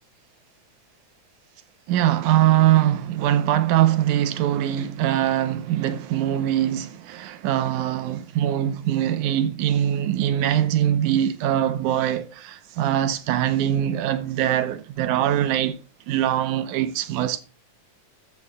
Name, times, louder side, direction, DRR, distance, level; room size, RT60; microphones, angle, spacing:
voice 1, 1.9-15.8 16.1-17.4, right 11 dB, 80° right, 2.1 m, -22 dB
14.0 x 8.3 x 2.2 m
omnidirectional pair, 3.6 m